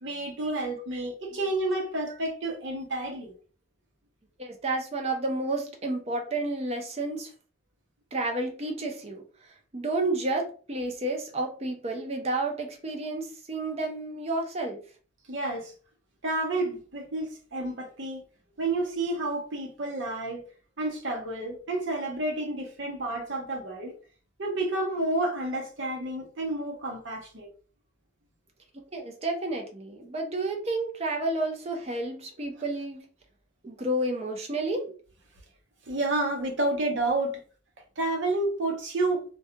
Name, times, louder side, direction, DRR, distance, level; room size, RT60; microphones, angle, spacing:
voice 1, 0.0-3.3 15.3-15.7 16.2-18.2 18.6-20.4 20.8-23.9 24.4-27.5 35.9-37.4 38.0-39.2, right 2 dB, 70° right, 0.8 m, -30 dB
voice 2, 1.0-1.5 4.4-7.3 8.1-14.8 28.9-33.0 33.6-34.9, right 2 dB, 30° right, 0.6 m, -31 dB
2.3 x 2.2 x 2.8 m
head